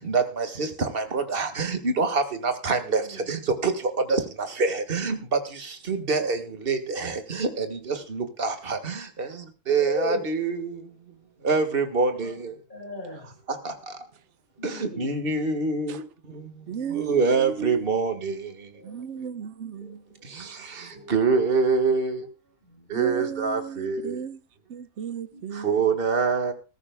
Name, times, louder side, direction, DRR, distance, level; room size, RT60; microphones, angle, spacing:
voice 1, 0.0-10.9 11.4-12.5 13.5-13.9 14.6-16.0 16.3-16.5 16.9-18.5 20.3-22.3 22.9-24.2 25.6-26.5, right 4 dB, 45° right, 1.9 m, -26 dB
voice 2, 2.8-3.4 7.5-8.0 9.8-10.3 12.7-13.4 14.6-15.2 18.7-19.2 19.6-19.9 20.9-21.3 22.6-23.3 25.3-25.8, left 1 dB, 40° left, 4.7 m, -39 dB
voice 3, 16.7-17.9 18.8-20.2 22.9-24.4 24.7-25.9, right 7 dB, 65° right, 1.2 m, -35 dB
20.5 x 14.0 x 2.3 m
omnidirectional pair, 1.3 m